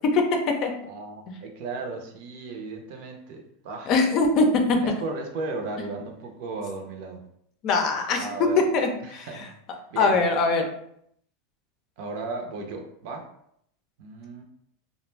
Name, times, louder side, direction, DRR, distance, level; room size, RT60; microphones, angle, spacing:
voice 1, 0.9-3.9 4.8-7.2 8.1-8.6 9.0-9.5 9.9-10.2 12.0-13.3 14.0-14.4, right 3 dB, 65° right, 3 dB, 0.6 m, -35 dB
voice 2, 3.8-4.8 7.6-8.3 8.7-9.5 10.0-10.7, left 3 dB, 45° left, 4 dB, 0.5 m, -22 dB
2.4 x 2.1 x 3.2 m, 0.71 s
supercardioid pair, 125°, 0 cm